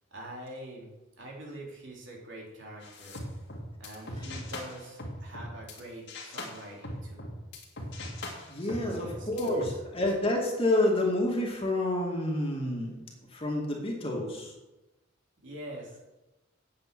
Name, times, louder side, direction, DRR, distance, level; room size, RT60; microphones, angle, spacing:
voice 1, 0.1-0.9 1.2-3.2 3.8-7.3 8.6-9.6 15.4-16.0, right 1 dB, 60° right, -2 dB, 3.5 m, -44 dB
sound 1, 2.8-5.8 6.1-9.7, left 1 dB, 60° left, 2.3 m, -40 dB
voice 2, 8.5-12.9 13.3-14.5, left 1 dB, 30° left, -1 dB, 2.3 m, -28 dB
8.8 x 8.6 x 6.1 m, 1.0 s
head